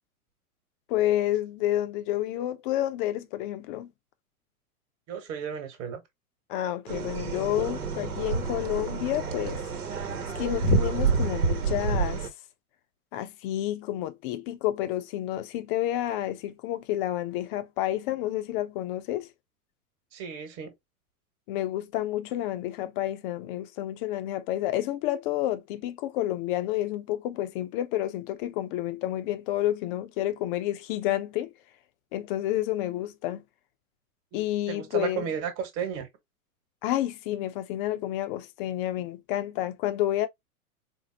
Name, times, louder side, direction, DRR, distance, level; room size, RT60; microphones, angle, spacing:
voice 1, 0.9-3.9 6.5-9.6 10.3-12.3 13.1-19.3 21.5-31.5 32.1-33.4 34.3-35.2 36.8-40.3, left 13 dB, 35° left, 0.6 m, -30 dB
voice 2, 5.1-6.0 20.1-20.7 34.3-34.4 34.7-36.1, right 7 dB, 35° right, 1.3 m, -33 dB
sound 1, 6.9-12.3, right 3 dB, 80° right, 1.1 m, -28 dB
4.4 x 2.0 x 2.8 m
hypercardioid pair, 110°, 45 cm